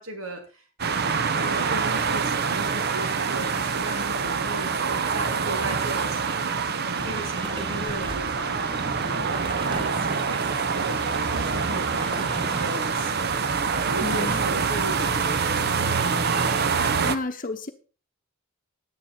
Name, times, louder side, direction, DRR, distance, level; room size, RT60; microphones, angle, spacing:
voice 1, 0.0-13.4 13.8-15.3, right 1 dB, 80° right, 3 dB, 2.6 m, -37 dB
sound 1, 0.8-17.2, right 5 dB, 50° right, 0.8 m, -26 dB
sound 2, 7.0-12.8, right 2 dB, 25° right, 0.9 m, -36 dB
voice 2, 14.0-14.4 17.0-17.7, left 2 dB, 40° left, 7 dB, 0.9 m, -31 dB
10.0 x 9.9 x 4.3 m, 0.35 s
head